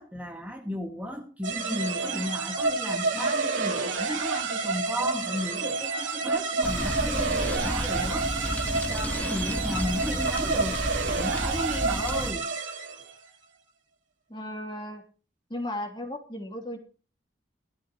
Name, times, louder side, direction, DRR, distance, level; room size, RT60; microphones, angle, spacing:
voice 1, 0.0-8.5 8.9-10.9 11.2-12.5, equal, 10° right, 1 dB, 2.0 m, -34 dB
sound 1, 1.4-13.1, right 4 dB, 85° right, 2.4 m, -29 dB
sound 2, 6.6-12.3, left 1 dB, 10° left, 1.2 m, -32 dB
voice 2, 14.3-15.0 15.5-16.8, left 1 dB, 25° left, 2 dB, 3.0 m, -35 dB
16.5 x 13.5 x 3.1 m, 0.38 s
head